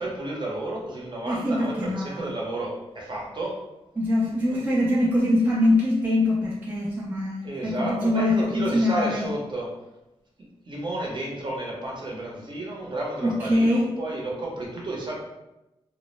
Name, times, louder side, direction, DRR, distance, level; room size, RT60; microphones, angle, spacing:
voice 1, 0.0-3.6 4.5-4.6 7.4-9.7 10.7-15.1, right 1 dB, 45° right, -3 dB, 0.8 m, -32 dB
voice 2, 1.3-2.2 4.0-9.3 13.2-13.9, left 1 dB, 15° right, -4 dB, 0.4 m, -23 dB
2.1 x 2.0 x 3.1 m, 0.96 s
cardioid pair, 70°, 11 cm